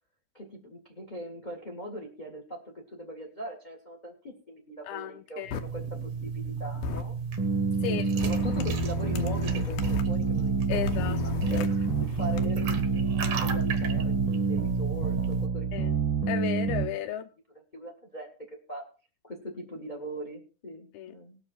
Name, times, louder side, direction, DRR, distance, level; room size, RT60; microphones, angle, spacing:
voice 1, 0.3-7.1 7.9-15.8 17.7-18.3 18.7-18.8 19.2-21.4, equal, 25° left, 0.9 m, -40 dB
voice 2, 4.9-5.6 7.8-8.1 10.7-11.2 11.5-11.6 15.7-15.9 16.3-17.3 20.9-21.1, left 11 dB, 85° left, 2.6 m, -34 dB
sound 1, 5.4-15.5, right 6 dB, 65° right, 1.3 m, -34 dB
sound 2, 5.5-5.6 6.8-7.0 8.2-10.0 10.7-12.5, left 5 dB, 70° left, 2.1 m, -34 dB
sound 3, 7.4-16.9, right 4 dB, 20° right, 0.9 m, -28 dB
19.0 x 7.0 x 4.5 m
omnidirectional pair, 4.4 m